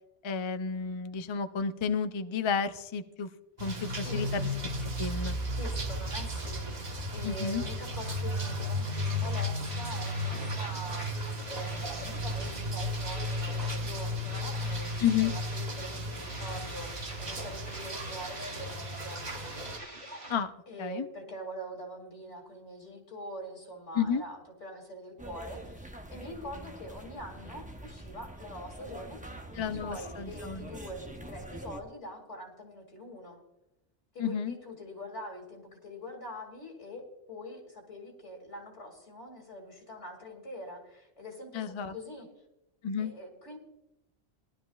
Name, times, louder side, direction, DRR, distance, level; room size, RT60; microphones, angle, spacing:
voice 1, 0.2-3.3 3.6-4.5 4.8-5.4 7.2-7.6 15.0-15.3 20.3-20.5 20.8-21.1 23.9-24.2 29.5-30.6 34.2-34.5 41.5-41.9 42.8-43.1, left 6 dB, 40° left, 9 dB, 0.4 m, -31 dB
sound 1, 3.6-19.8, left 1 dB, 40° right, 1.3 m, -34 dB
voice 2, 4.0-4.3 5.6-19.3 20.1-20.2 20.7-33.4 34.1-42.3 43.0-43.6, equal, 85° left, 2 dB, 2.8 m, -44 dB
sound 2, 8.9-20.4, right 1 dB, 65° right, 2.8 m, -45 dB
sound 3, 25.2-31.8, right 1 dB, 10° right, 0.7 m, -45 dB
19.5 x 12.0 x 2.3 m, 0.92 s
omnidirectional pair, 1.2 m